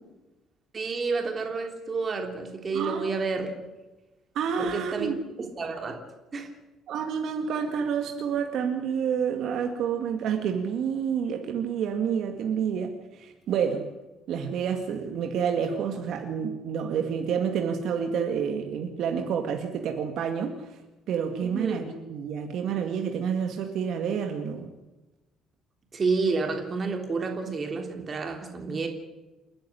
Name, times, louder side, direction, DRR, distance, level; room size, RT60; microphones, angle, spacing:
voice 1, 0.7-3.5 4.6-5.1 5.4-6.0 6.3-6.5 21.4-21.8 25.9-28.9, right 4 dB, 30° right, 4 dB, 3.4 m, -30 dB
voice 2, 2.7-3.1 4.4-5.2 6.9-13.8 14.3-20.8 21.1-24.8, right 7 dB, 60° right, 5 dB, 2.1 m, -29 dB
28.5 x 10.5 x 9.9 m, 1.1 s
cardioid pair, 150°, 0 cm